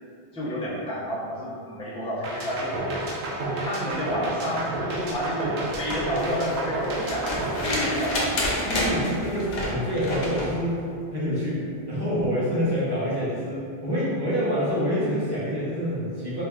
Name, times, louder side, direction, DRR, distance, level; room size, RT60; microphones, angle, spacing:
voice 1, 0.3-2.8 3.6-8.1, equal, 10° left, -8 dB, 0.3 m, -30 dB
sound 1, 2.2-8.4, right 2 dB, 90° right, 0.8 m, -31 dB
sound 2, 5.7-10.6 12.2-12.3, left 1 dB, 70° left, 0.8 m, -29 dB
voice 2, 7.6-8.1 8.6-10.7 11.1-16.4, equal, 25° right, -12 dB, 0.8 m, -27 dB
3.4 x 2.5 x 2.3 m, 2.4 s
omnidirectional pair, 1.1 m